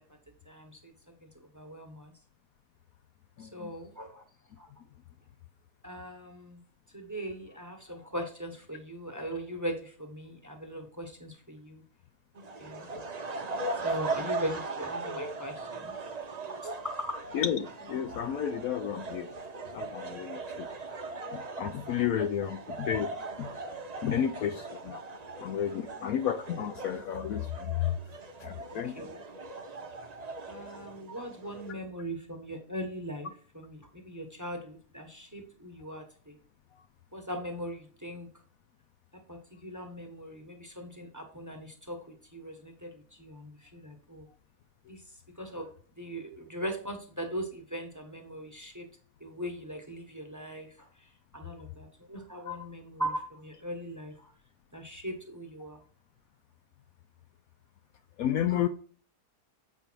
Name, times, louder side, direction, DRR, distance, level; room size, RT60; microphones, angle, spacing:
voice 1, 0.5-0.9 1.5-2.1 3.4-4.2 4.6-4.7 5.8-6.6 6.9-11.8 12.6-12.9 13.8-15.9 16.6-17.2 28.7-29.2 30.5-36.4 37.1-38.3 39.1-42.0 42.3-44.3 44.9-45.0 45.4-45.7 46.0-48.9 49.2-50.9 51.3-54.1 54.7-55.8, equal, 10° right, 1.1 m, -40 dB
voice 2, 3.4-3.7 17.3-19.3 19.7-20.7 21.3-23.5 24.0-25.0 25.4-28.0 28.4-29.1 52.5-52.6 58.2-58.7, left 9 dB, 70° left, 1.0 m, -32 dB
sound 1, 12.3-31.7, right 3 dB, 35° right, 0.7 m, -39 dB
8.2 x 5.2 x 4.6 m
omnidirectional pair, 1.7 m